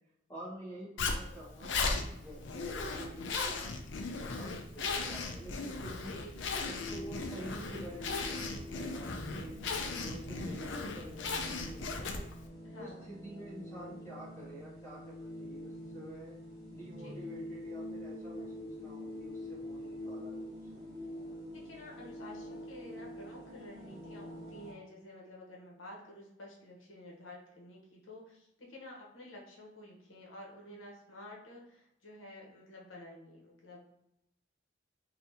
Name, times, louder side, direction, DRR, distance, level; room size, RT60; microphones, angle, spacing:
voice 1, 0.3-6.2 6.6-12.3 12.8-16.3 16.7-20.7, right 1 dB, 15° left, -7 dB, 1.2 m, -49 dB
Zipper (clothing), 1.0-12.4, left 4 dB, 70° left, 0.4 m, -37 dB
voice 2, 2.8-3.2 6.2-6.5 12.6-13.1 17.0-17.2 21.5-33.8, left 1 dB, 90° left, -2 dB, 0.9 m, -51 dB
sound 1, 6.2-24.7, left 1 dB, 20° right, 0.9 m, -46 dB
3.3 x 2.7 x 2.8 m, 0.80 s
head